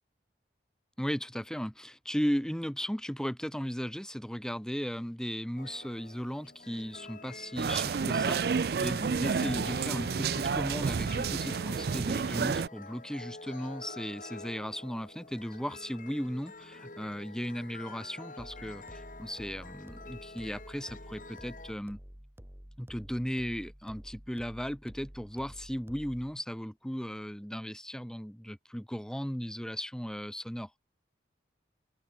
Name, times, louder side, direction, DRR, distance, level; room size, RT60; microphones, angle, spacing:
voice 1, 1.0-22.0 22.8-30.7, equal, 5° left, 2.2 m, -36 dB
sound 1, 5.6-21.7, left 3 dB, 45° left, 1.9 m, -48 dB
sound 2, 7.6-12.7, right 5 dB, 60° right, 0.4 m, -30 dB
sound 3, 18.4-26.4, equal, 15° right, 1.4 m, -50 dB
open air
head